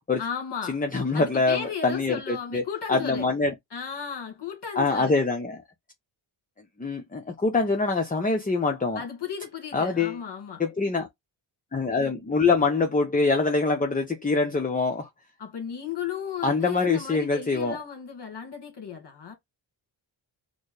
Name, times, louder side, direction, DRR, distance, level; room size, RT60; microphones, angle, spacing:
voice 1, 0.2-0.8 1.1-3.3 3.7-5.1 9.0-10.6 15.4-19.3, left 7 dB, 55° left, 1.9 m, -35 dB
voice 2, 0.7-2.6 2.9-3.5 4.7-5.6 6.8-9.0 9.7-10.2 10.6-11.1 11.7-15.1 16.4-17.8, left 3 dB, 15° left, 0.7 m, -24 dB
4.2 x 2.1 x 3.3 m
cardioid pair, 65°, 50 cm